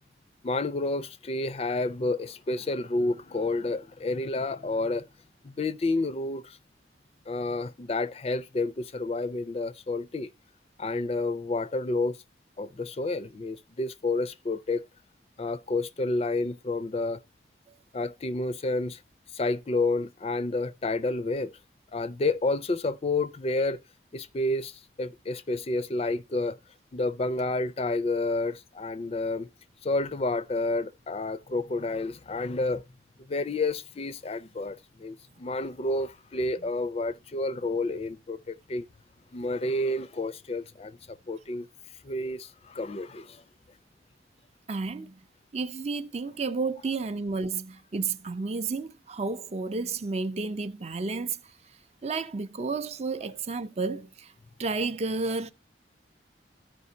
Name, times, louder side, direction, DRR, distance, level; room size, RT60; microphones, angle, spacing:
voice 1, 0.4-5.1 5.4-6.6 7.3-10.3 10.8-12.2 12.6-14.8 15.4-17.2 17.9-19.0 19.3-21.5 21.9-23.8 24.1-26.6 26.9-29.5 29.8-32.8 33.3-38.9 39.3-41.7 42.0-43.4, left 2 dB, 35° left, 0.4 m, -30 dB
voice 2, 44.7-45.2 45.5-51.4 52.0-54.3 54.6-55.5, right 4 dB, 35° right, 0.5 m, -31 dB
14.0 x 5.0 x 2.7 m
head